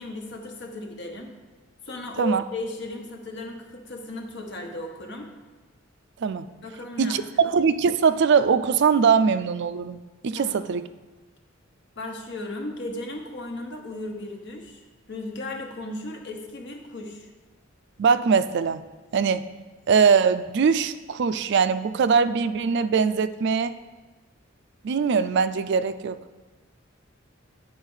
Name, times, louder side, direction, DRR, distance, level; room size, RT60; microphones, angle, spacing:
voice 1, 0.0-1.3 1.8-5.3 6.6-7.4 10.3-10.7 12.0-14.8 15.1-17.3, left 2 dB, 60° left, 3 dB, 1.1 m, -35 dB
voice 2, 7.0-10.8 18.0-18.8 19.1-19.5 19.9-23.8 24.8-26.2, right 6 dB, 60° right, 13 dB, 0.4 m, -21 dB
8.9 x 4.7 x 5.5 m, 1.3 s
head